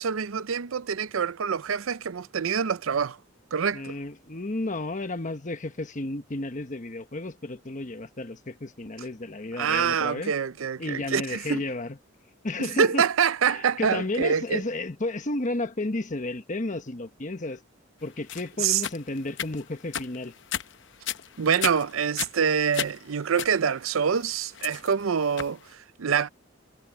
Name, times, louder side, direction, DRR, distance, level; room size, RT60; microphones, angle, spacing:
voice 1, 0.0-3.2 3.5-3.9 9.6-11.6 12.8-14.6 18.6-18.8 21.4-26.3, right 7 dB, 85° right, 0.6 m, -26 dB
voice 2, 3.7-10.3 10.8-12.0 12.4-13.1 13.5-17.6 18.0-20.3, left 2 dB, 40° left, 1.2 m, -32 dB
sound 1, 18.3-25.6, left 9 dB, 60° left, 0.8 m, -35 dB
head